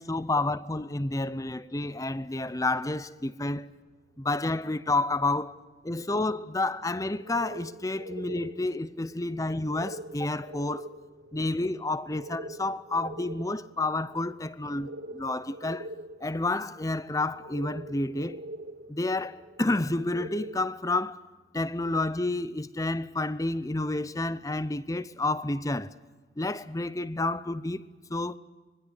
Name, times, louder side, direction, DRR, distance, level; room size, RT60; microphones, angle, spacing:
voice 1, 0.0-3.7 4.2-5.6 5.8-10.9 11.3-15.9 16.2-18.4 18.9-21.2 21.5-25.9 26.4-27.8 28.1-28.4, left 2 dB, 20° left, 0.7 m, -30 dB
sound 1, 3.0-3.1 3.3-3.4 4.9-5.0 5.6-5.7 7.1-20.7, right 1 dB, 85° right, 1.3 m, -44 dB
25.5 x 21.0 x 8.2 m
head